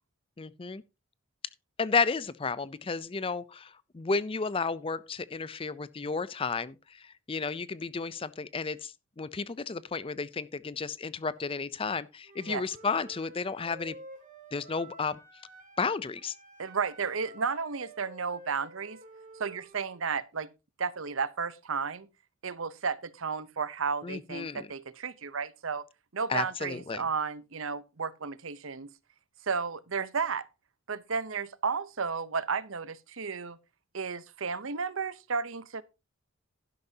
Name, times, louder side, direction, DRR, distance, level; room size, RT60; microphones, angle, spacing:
voice 1, 0.4-0.8 1.8-14.0 14.5-15.2 15.8-16.3 24.0-24.7 26.3-27.0, left 4 dB, 25° left, 0.5 m, -32 dB
Wind instrument woodwind instrument, 12.2-15.9 16.1-20.0, right 1 dB, 40° right, 3.3 m, -51 dB
voice 2, 16.6-19.0 19.4-20.5 20.8-22.1 22.4-25.8 26.1-28.9 29.4-30.4 30.9-33.6 33.9-35.8, right 5 dB, 70° right, 0.8 m, -33 dB
11.5 x 11.0 x 2.8 m
head